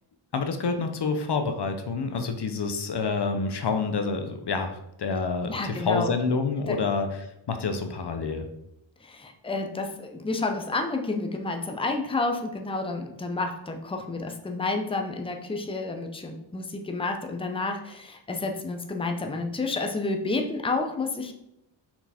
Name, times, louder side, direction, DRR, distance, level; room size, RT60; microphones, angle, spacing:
voice 1, 0.3-7.1 7.5-8.5, left 4 dB, 55° left, 6 dB, 0.9 m, -28 dB
voice 2, 5.4-6.1 6.7-6.8 9.0-21.3, left 3 dB, 10° left, 4 dB, 0.7 m, -30 dB
5.8 x 4.5 x 4.3 m, 0.84 s
wide cardioid pair, 95°, 47 cm